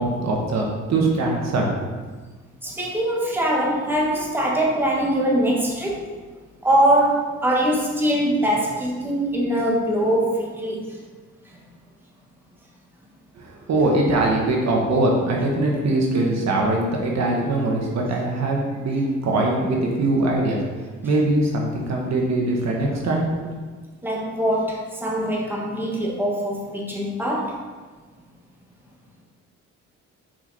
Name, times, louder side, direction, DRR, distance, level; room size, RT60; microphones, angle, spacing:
voice 1, 0.0-1.7 13.4-20.6 21.0-23.5, right 2 dB, 60° right, -1 dB, 1.5 m, -22 dB
voice 2, 2.6-6.0 6.6-10.9 24.0-27.6, right 1 dB, 5° right, -3 dB, 1.6 m, -22 dB
5.9 x 5.2 x 4.2 m, 1.4 s
cardioid pair, 90°, 30 cm